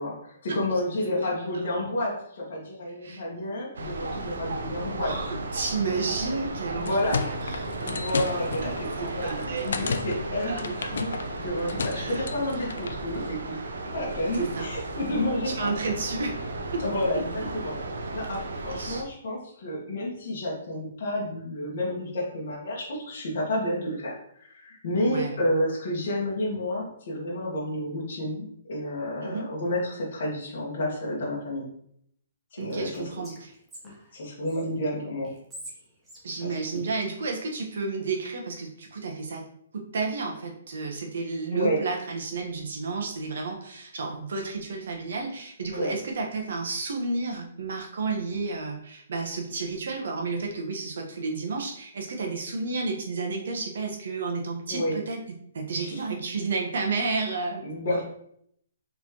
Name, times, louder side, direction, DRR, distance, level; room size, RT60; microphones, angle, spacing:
voice 1, 0.0-5.1 6.8-7.2 7.8-11.1 11.4-13.6 13.9-15.7 16.8-17.7 18.1-31.6 32.5-33.0 34.1-35.3 36.4-36.8 41.5-41.8 45.7-45.9 54.7-55.0 55.7-56.0 57.6-58.0, left 1 dB, 40° left, -5 dB, 1.4 m, -30 dB
sound 1, 3.7-19.0, right 2 dB, 75° right, 0.6 m, -35 dB
voice 2, 5.0-7.6 9.0-9.9 10.5-10.9 11.9-12.3 14.3-14.7 15.5-16.8 17.1-17.2 18.8-19.0 25.0-25.4 29.2-29.4 32.6-33.5 36.2-39.5 39.7-55.2 55.5-57.6 57.9-58.0, right 4 dB, 55° right, 1 dB, 0.9 m, -31 dB
sound 2, 6.6-13.0, left 5 dB, 65° left, 0.4 m, -34 dB
Whispering, 32.6-34.6 35.2-37.4, equal, 5° right, 0.7 m, -47 dB
4.3 x 3.3 x 2.9 m, 0.68 s
hypercardioid pair, 180°, 0 cm